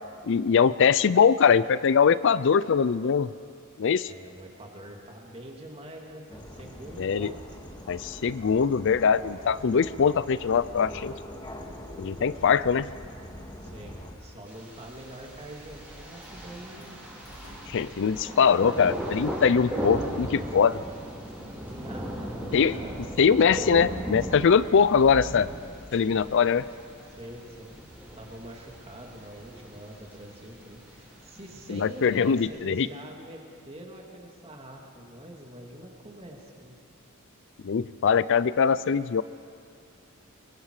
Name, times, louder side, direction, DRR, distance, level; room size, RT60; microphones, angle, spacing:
voice 1, 0.2-3.3 3.8-4.1 7.0-7.3 7.9-11.1 12.0-12.9 17.7-20.8 22.5-22.8 23.2-25.5 25.9-26.6 31.7-32.9 37.6-39.2, left 6 dB, 60° left, 17 dB, 0.4 m, -22 dB
voice 2, 4.1-7.6 12.1-12.3 13.6-17.0 17.7-18.3 21.6-22.4 22.7-23.0 27.1-27.7 28.1-36.8, right 1 dB, 30° right, 0 dB, 2.7 m, -45 dB
sound 1, 6.3-14.1, left 1 dB, 20° left, 1.9 m, -43 dB
Sliding door, 13.1-32.7, equal, 80° left, 5.9 m, -51 dB
Thunder, 14.5-32.4, equal, 10° right, 4.2 m, -38 dB
23.5 x 22.5 x 4.9 m, 2.5 s
head